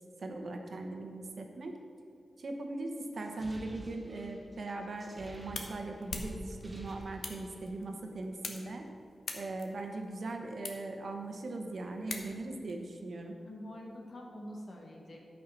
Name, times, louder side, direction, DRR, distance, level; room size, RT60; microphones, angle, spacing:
voice 1, 0.2-1.8 2.4-8.9 9.3-13.4, right 2 dB, 60° right, 3 dB, 1.1 m, -39 dB
sound 1, 3.1-6.1 6.4-7.7, equal, 10° right, 1.3 m, -50 dB
sound 2, 4.9-12.7, left 3 dB, 75° left, 1.1 m, -46 dB
voice 2, 13.4-15.2, left 1 dB, 50° left, -1 dB, 1.8 m, -46 dB
12.0 x 5.6 x 5.8 m, 2.6 s
wide cardioid pair, 145°, 0 cm